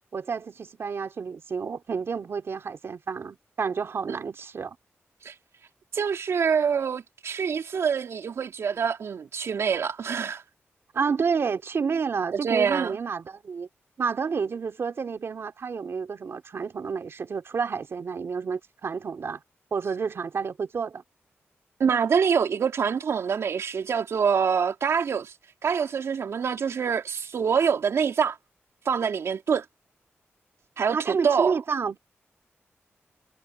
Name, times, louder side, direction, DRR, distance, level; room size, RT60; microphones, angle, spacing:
voice 1, 0.1-4.8 10.9-13.7 14.0-19.4 19.7-21.0 30.9-32.0, right 5 dB, 65° right, 3.1 m, -30 dB
voice 2, 5.9-10.4 12.3-13.0 21.8-25.3 25.6-28.4 28.9-29.6 30.8-31.5, right 6 dB, 80° right, 3.4 m, -25 dB
wide cardioid pair, 85°, 5 cm